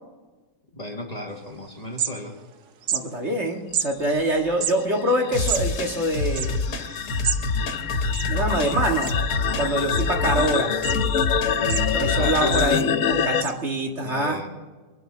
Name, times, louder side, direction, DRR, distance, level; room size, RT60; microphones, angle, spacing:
voice 1, 0.7-2.4 9.4-9.9 11.5-12.5 14.0-14.5, left 1 dB, 25° left, 1 dB, 1.7 m, -35 dB
sound 1, 1.4-1.5 1.8-2.5 2.8-3.0 3.7-3.9 4.5-7.4 7.7-7.8 8.0-8.7 9.0-9.4 9.9-10.4 10.8-11.0 11.4-12.2 12.5-12.7 13.4-13.5, right 8 dB, 80° right, 1.5 m, -30 dB
voice 2, 2.9-6.6 8.3-9.1 9.6-10.7 11.9-14.4, right 1 dB, 45° right, 1 dB, 2.2 m, -25 dB
sound 2, 4.1-13.4, left 7 dB, 65° left, 1.1 m, -26 dB
sound 3, 5.3-12.8, left 3 dB, 80° left, 1.9 m, -27 dB
25.0 x 12.0 x 4.0 m, 1.3 s
omnidirectional pair, 1.7 m